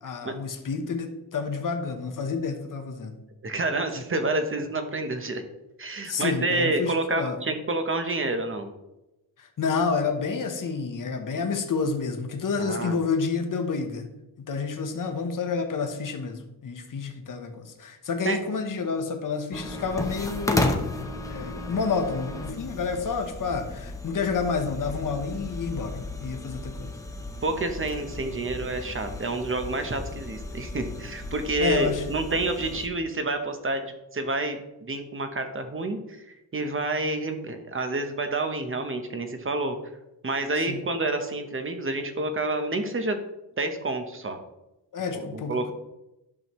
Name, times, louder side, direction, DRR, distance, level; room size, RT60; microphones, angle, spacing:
voice 1, 0.0-3.2 6.0-7.4 9.4-14.1 14.4-20.8 21.3-27.0 31.6-32.0 40.7-40.8 44.9-45.7, left 5 dB, 50° left, 5 dB, 1.1 m, -29 dB
voice 2, 3.4-5.4 5.8-8.7 12.6-13.0 18.2-18.4 27.4-36.0 36.5-39.8 40.2-43.2 43.6-44.4 45.3-45.7, right 2 dB, 30° right, 7 dB, 0.9 m, -28 dB
sound 1, 19.5-32.9, left 2 dB, 10° left, 0.8 m, -34 dB
11.0 x 6.2 x 3.1 m, 0.94 s
wide cardioid pair, 145°, 42 cm